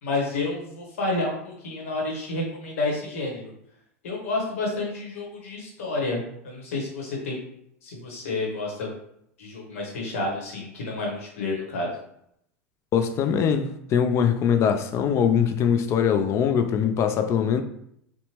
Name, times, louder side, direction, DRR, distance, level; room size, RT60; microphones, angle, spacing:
voice 1, 0.0-3.5 4.0-7.4 7.8-8.9 9.4-11.9, left 2 dB, 75° left, 0.9 m, -30 dB
voice 2, 12.9-17.6, left 7 dB, 40° left, 0.3 m, -22 dB
2.8 x 2.1 x 2.9 m
hypercardioid pair, 90°, 8 cm